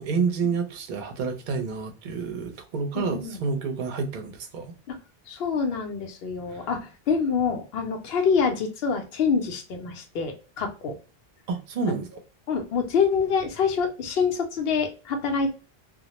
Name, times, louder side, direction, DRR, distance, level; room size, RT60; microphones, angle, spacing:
voice 1, 0.0-4.7 6.5-6.7 11.5-12.1, right 5 dB, 55° right, 0.7 m, -29 dB
voice 2, 2.9-3.4 4.9-5.0 5.3-11.0 11.8-11.9 12.5-15.5, left 5 dB, 75° left, 0.8 m, -26 dB
2.2 x 2.0 x 2.8 m
omnidirectional pair, 1.0 m